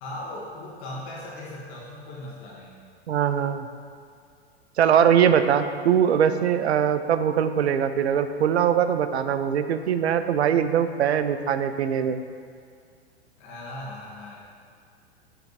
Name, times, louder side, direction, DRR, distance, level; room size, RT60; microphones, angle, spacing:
voice 1, 0.0-2.7 13.4-14.4, left 1 dB, 45° left, -5 dB, 1.4 m, -38 dB
voice 2, 3.1-3.7 4.8-12.2, right 8 dB, 75° right, 10 dB, 0.5 m, -22 dB
8.2 x 3.3 x 4.1 m, 2.2 s
figure-of-eight pair, 100°, 33 cm